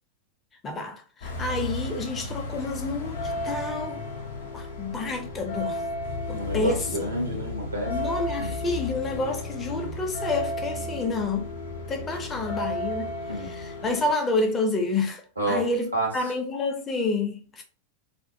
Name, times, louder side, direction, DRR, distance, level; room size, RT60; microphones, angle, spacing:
voice 1, 0.6-4.0 4.5-5.8 6.3-6.8 7.9-11.5 11.9-13.1 13.5-15.2 15.5-17.6, left 3 dB, 20° left, 0.6 m, -29 dB
sound 1, 1.2-14.1, left 1 dB, 60° left, 0.6 m, -33 dB
voice 2, 6.3-7.9 8.4-8.5 13.3-13.5 15.4-16.3, right 1 dB, 85° right, 0.8 m, -29 dB
2.5 x 2.1 x 2.7 m
figure-of-eight pair, 90°, 0 cm